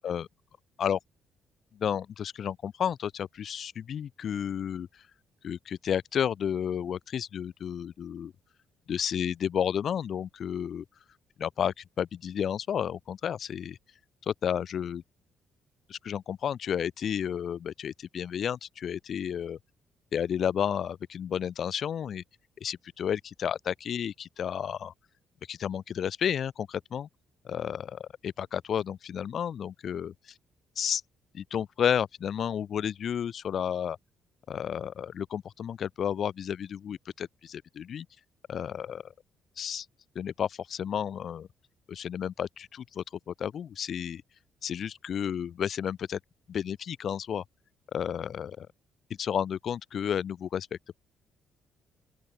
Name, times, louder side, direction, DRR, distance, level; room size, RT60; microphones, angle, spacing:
voice 1, 1.7-4.9 5.4-8.3 8.9-10.8 11.4-13.8 14.2-15.0 15.9-19.6 20.1-22.2 22.6-24.9 25.5-27.1 27.4-30.1 30.8-31.0 31.3-34.0 34.5-38.1 38.5-39.1 39.6-39.9 40.2-41.5 41.9-44.2 44.6-46.2 46.5-47.4 47.9-48.7 49.2-50.9, left 8 dB, 60° left, 0.5 m, -32 dB
open air
cardioid pair, 90°, 0 cm